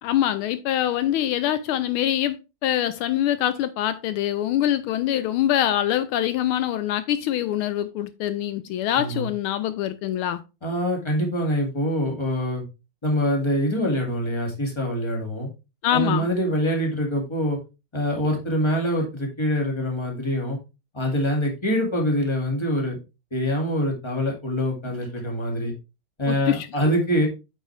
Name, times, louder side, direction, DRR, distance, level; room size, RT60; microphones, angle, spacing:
voice 1, 0.0-10.4 15.8-16.3 26.3-26.7, left 12 dB, 80° left, 1.4 m, -24 dB
voice 2, 8.9-9.3 10.6-12.6 13.0-15.5 15.9-17.6 17.9-20.6 20.9-23.0 23.3-25.7 26.2-27.3, equal, 15° left, 2.1 m, -24 dB
8.6 x 5.4 x 3.3 m
omnidirectional pair, 2.3 m